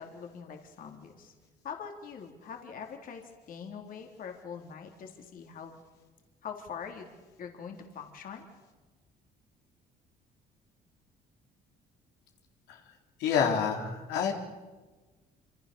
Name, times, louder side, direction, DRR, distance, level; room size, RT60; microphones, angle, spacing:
voice 1, 0.0-1.3 1.6-5.7 6.4-8.5, left 6 dB, 55° left, 3 dB, 3.6 m, -43 dB
voice 2, 13.2-14.3, left 7 dB, 85° left, 1 dB, 3.8 m, -28 dB
27.5 x 26.5 x 7.0 m, 1.3 s
cardioid pair, 110°, 17 cm